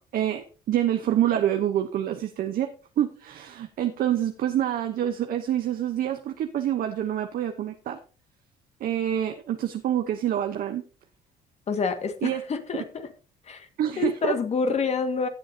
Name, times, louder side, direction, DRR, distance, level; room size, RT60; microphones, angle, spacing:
voice 1, 0.0-2.7 3.0-8.0 8.8-10.8 12.2-12.4 13.8-14.3, right 11 dB, 60° right, 6 dB, 1.0 m, -26 dB
voice 2, 11.7-13.1 13.5-13.7 14.0-15.3, left 5 dB, 40° left, 7 dB, 1.9 m, -27 dB
16.0 x 7.8 x 2.8 m, 0.36 s
cardioid pair, 110°, 17 cm